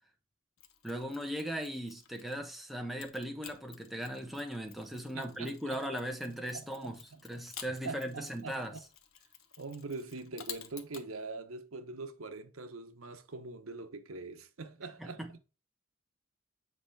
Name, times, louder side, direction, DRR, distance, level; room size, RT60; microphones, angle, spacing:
Mechanisms, 0.6-2.5 3.0-11.1, left 9 dB, 80° left, 1.1 m, -52 dB
voice 1, 0.8-8.7 15.0-15.4, equal, ahead, 1.0 m, -38 dB
voice 2, 4.9-6.0 6.3-7.2 7.8-8.8 9.6-15.4, right 3 dB, 85° right, 1.0 m, -44 dB
8.0 x 4.9 x 3.3 m
head